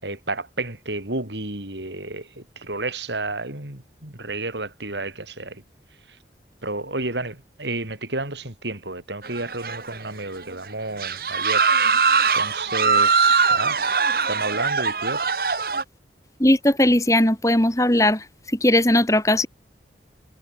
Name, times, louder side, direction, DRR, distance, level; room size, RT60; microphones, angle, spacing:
voice 1, 0.0-5.6 6.6-11.7 12.3-13.8 14.3-15.2, right 2 dB, 85° right, 5.9 m, -31 dB
sound 1, 9.2-10.1 10.4-10.5 11.0-15.8, right 5 dB, 55° right, 1.4 m, -21 dB
voice 2, 16.4-18.3 18.5-19.5, left 1 dB, 20° left, 2.4 m, -18 dB
head